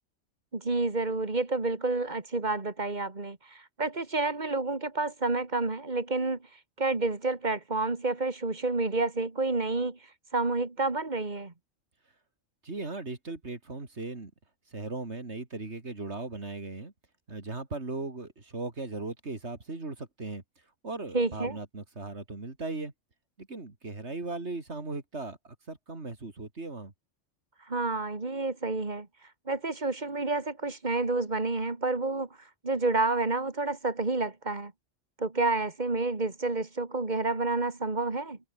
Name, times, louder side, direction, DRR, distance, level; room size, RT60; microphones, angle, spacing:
voice 1, 0.5-6.4 6.8-10.0 10.3-11.5 21.1-21.6 27.7-29.1 29.5-32.3 32.6-34.7 35.2-38.4, right 3 dB, 35° right, 2.2 m, -29 dB
voice 2, 12.6-14.3 14.7-16.9 17.3-20.4 20.8-22.9 23.4-26.9, right 3 dB, 60° right, 3.5 m, -38 dB
omnidirectional pair, 1.3 m